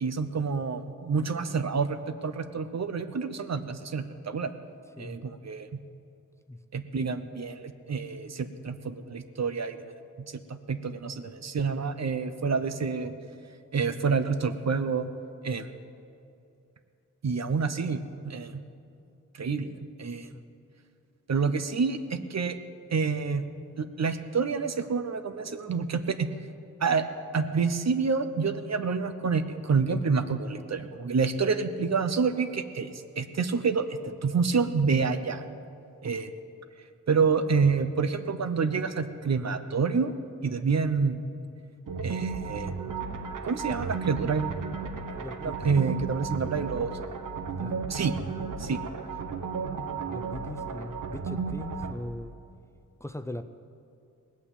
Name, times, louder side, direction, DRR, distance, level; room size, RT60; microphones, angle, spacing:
voice 1, 0.0-4.5 5.0-5.7 6.7-9.9 10.3-13.1 13.7-15.1 15.4-15.7 17.2-18.6 19.3-19.7 20.0-20.3 21.3-22.6 22.9-23.4 23.8-26.3 26.8-27.0 27.3-35.4 36.0-36.3 37.1-40.1 40.4-41.2 42.0-42.8 43.4-44.5 45.4-46.9 47.9-48.1 48.6-48.8, right 5 dB, 55° right, 10 dB, 0.8 m, -28 dB
sound 1, 41.9-51.9, right 5 dB, 75° right, 1.2 m, -34 dB
voice 2, 45.2-45.8 47.5-47.7 50.1-52.3 53.0-53.4, left 1 dB, 10° left, 9 dB, 0.6 m, -39 dB
18.5 x 8.6 x 8.1 m, 2.5 s
wide cardioid pair, 90°, 32 cm